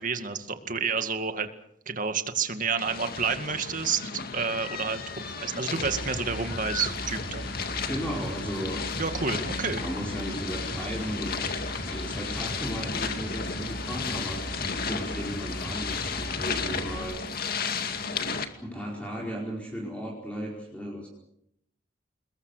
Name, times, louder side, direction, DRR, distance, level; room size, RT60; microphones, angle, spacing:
voice 1, 0.0-1.5 1.9-5.0 5.2-7.5 9.0-9.8, right 5 dB, 45° right, 8 dB, 2.1 m, -29 dB
sound 1, 2.8-18.5, left 5 dB, 50° left, 2.3 m, -34 dB
sound 2, 5.7-17.0, left 1 dB, 75° left, 5.3 m, -37 dB
voice 2, 7.9-9.0 9.8-11.5 11.9-17.7 18.6-21.1, equal, 5° left, -3 dB, 5.1 m, -36 dB
29.0 x 21.5 x 6.6 m, 0.75 s
head